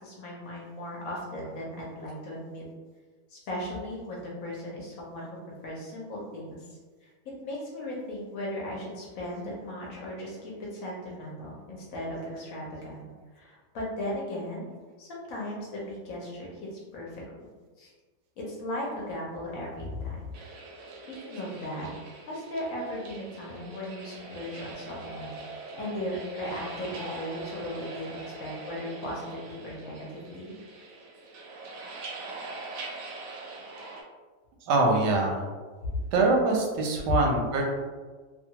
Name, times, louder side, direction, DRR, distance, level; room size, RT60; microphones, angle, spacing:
voice 1, 0.0-2.6 3.3-5.4 5.6-13.1 13.3-14.7 15.0-17.4 17.8-17.9 18.4-20.3 21.1-21.9 22.3-30.5 35.9-36.0 37.1-37.2, left 1 dB, 65° left, -4 dB, 0.9 m, -37 dB
sound 1, 20.3-34.0, right 2 dB, 70° right, 0.8 m, -42 dB
voice 2, 34.7-35.4 36.1-37.7, right 2 dB, 90° right, 1 dB, 1.2 m, -23 dB
2.9 x 2.3 x 2.7 m, 1.4 s
omnidirectional pair, 1.8 m